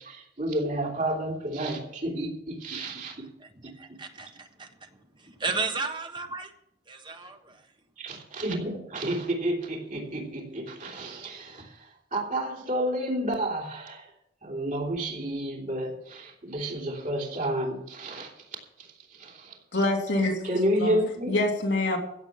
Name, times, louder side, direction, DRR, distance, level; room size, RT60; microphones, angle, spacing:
voice 1, 0.0-3.3 3.6-4.0 8.0-14.0 14.4-18.3 19.1-19.6 20.4-21.4, right 1 dB, 45° right, 3.3 m, -30 dB
voice 2, 3.4-6.5 6.9-7.7, right 4 dB, 30° right, 1.4 m, -35 dB
voice 3, 19.7-20.5 20.8-21.0 21.3-22.0, left 2 dB, 90° left, 3.2 m, -25 dB
16.0 x 7.7 x 7.4 m
head